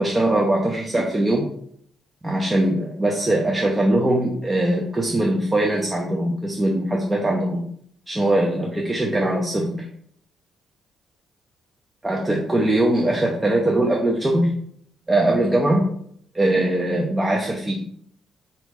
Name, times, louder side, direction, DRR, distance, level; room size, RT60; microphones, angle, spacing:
voice 1, 0.0-1.5 2.2-7.6 8.1-9.9 12.0-14.5 15.1-15.9 16.3-17.8, right 1 dB, 20° right, -1 dB, 0.7 m, -21 dB
3.9 x 2.9 x 3.4 m, 0.65 s
figure-of-eight pair, 40°, 0 cm